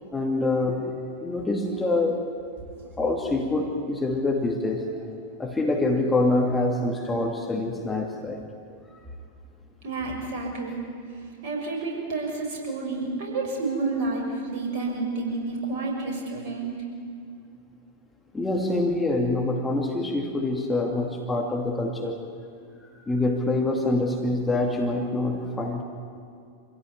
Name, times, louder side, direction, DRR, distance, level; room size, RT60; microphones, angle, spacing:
voice 1, 0.1-2.2 3.0-5.1 5.4-8.5 18.3-22.3 23.1-25.8, left 2 dB, 10° left, 1 dB, 2.6 m, -25 dB
voice 2, 9.8-10.9 11.4-16.8, right 3 dB, 50° right, 0 dB, 6.6 m, -30 dB
26.5 x 16.5 x 9.6 m, 2.3 s
figure-of-eight pair, 90°, 0 cm